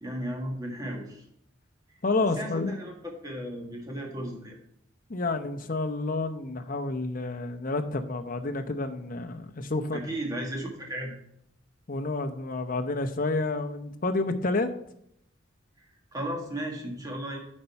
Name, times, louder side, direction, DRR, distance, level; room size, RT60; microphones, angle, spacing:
voice 1, 0.0-1.3 2.4-4.6 9.9-11.1 15.8-15.9 16.1-17.4, equal, 20° right, 0 dB, 1.7 m, -35 dB
voice 2, 2.0-2.7 5.1-10.0 11.9-14.7, left 2 dB, 45° left, 6 dB, 0.7 m, -29 dB
8.6 x 5.4 x 5.6 m, 0.75 s
head